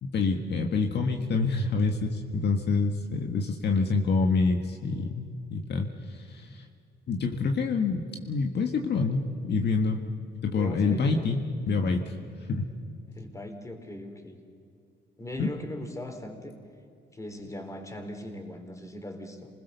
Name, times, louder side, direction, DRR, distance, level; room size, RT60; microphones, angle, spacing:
voice 1, 0.0-6.7 7.1-10.0 10.4-12.1 12.5-12.7 15.4-15.5, left 4 dB, 60° left, 3 dB, 1.7 m, -27 dB
voice 2, 10.5-11.3 13.1-14.4 15.2-16.5 17.1-19.5, left 1 dB, 15° left, 4 dB, 3.9 m, -39 dB
27.5 x 20.5 x 6.9 m, 2.4 s
cardioid pair, 90°, 20 cm